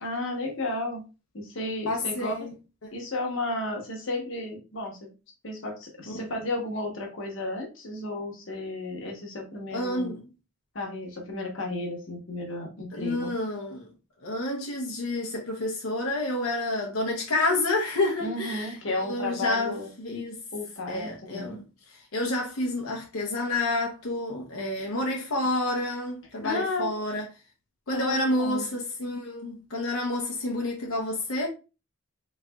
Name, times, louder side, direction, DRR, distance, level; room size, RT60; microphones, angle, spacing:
voice 1, 0.0-1.0 1.3-2.3 2.9-5.1 5.4-10.1 10.7-13.3 18.2-19.9 20.5-21.6 26.4-26.9 27.9-28.6, left 2 dB, 65° left, 1.0 m, -33 dB
voice 2, 1.9-2.5 9.7-10.2 12.9-13.8 14.2-18.8 19.1-20.4 20.9-21.6 22.1-27.2 27.9-31.5, left 2 dB, 90° left, 0.8 m, -29 dB
3.8 x 3.2 x 2.3 m
head